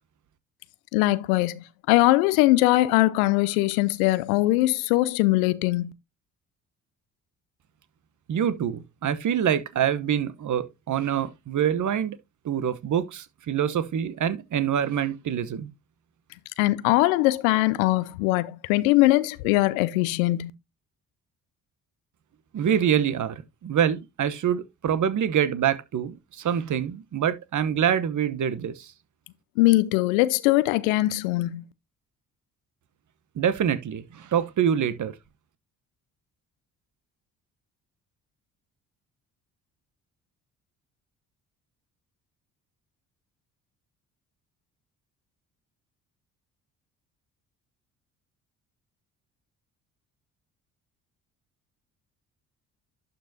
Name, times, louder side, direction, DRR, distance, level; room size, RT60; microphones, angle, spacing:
voice 1, 0.9-5.9 16.6-20.5 29.6-31.6, left 18 dB, 75° left, 0.7 m, -21 dB
voice 2, 8.3-12.2 12.4-15.7 22.5-28.9 33.4-35.1, right 9 dB, 45° right, 1.1 m, -25 dB
11.5 x 5.3 x 2.7 m
hypercardioid pair, 50°, 43 cm